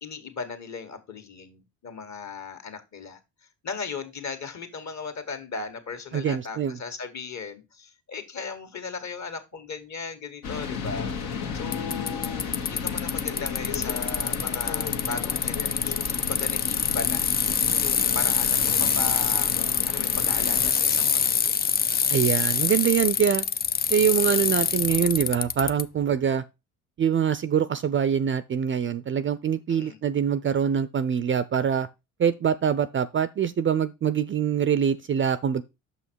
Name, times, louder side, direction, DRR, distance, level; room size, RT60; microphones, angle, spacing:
voice 1, 0.0-3.2 3.6-11.1 11.5-17.3 17.8-19.5 19.9-21.6 29.7-30.0, left 4 dB, 45° left, 1.8 m, -37 dB
voice 2, 6.1-6.8 22.1-23.5 23.9-26.4 27.0-31.9 32.2-35.6, right 8 dB, 30° right, 0.5 m, -24 dB
sound 1, 10.4-20.7, left 6 dB, 70° left, 1.6 m, -33 dB
Bicycle, 11.7-25.8, left 7 dB, 25° left, 0.4 m, -25 dB
6.2 x 5.7 x 4.5 m
hypercardioid pair, 65°, 39 cm